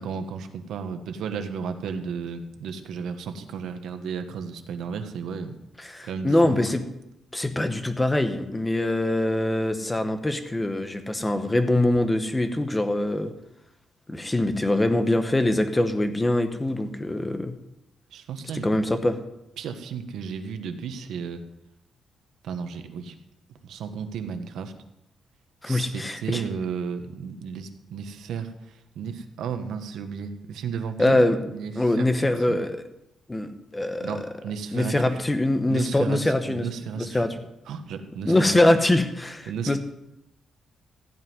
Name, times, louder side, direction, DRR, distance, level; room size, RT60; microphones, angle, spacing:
voice 1, 0.0-5.6 6.0-6.6 18.1-18.7 19.6-21.4 22.4-23.1 23.6-24.7 25.6-31.2 31.5-32.6 34.0-35.2 35.6-37.2 37.7-38.5 39.5-39.8, right 6 dB, 85° right, 8 dB, 1.3 m, -34 dB
voice 2, 5.8-6.8 7.3-13.3 14.1-17.5 18.6-19.2 25.6-26.4 31.0-31.4 31.8-32.8 33.3-34.3 34.7-36.7 37.0-37.3 38.2-39.8, left 1 dB, 10° left, 8 dB, 0.9 m, -23 dB
15.0 x 5.4 x 9.5 m, 0.86 s
wide cardioid pair, 180°, 0 cm